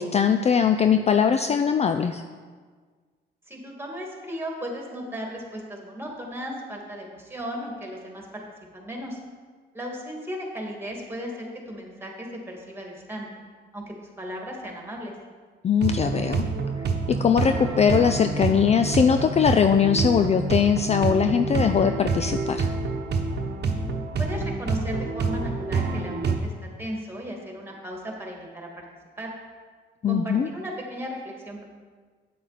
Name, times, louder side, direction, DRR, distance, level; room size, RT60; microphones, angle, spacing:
voice 1, 0.0-2.2 15.6-16.4 17.1-22.7 30.0-30.5, left 7 dB, 35° left, 7 dB, 0.4 m, -21 dB
voice 2, 3.5-8.4 8.7-9.2 9.7-13.3 13.7-15.1 24.2-26.5 26.8-28.9 29.2-29.3 30.0-31.6, equal, 10° right, 0 dB, 2.2 m, -35 dB
sound 1, 15.8-26.4, right 4 dB, 55° right, 1.0 m, -27 dB
8.5 x 8.4 x 4.1 m, 1.5 s
cardioid pair, 90°, 20 cm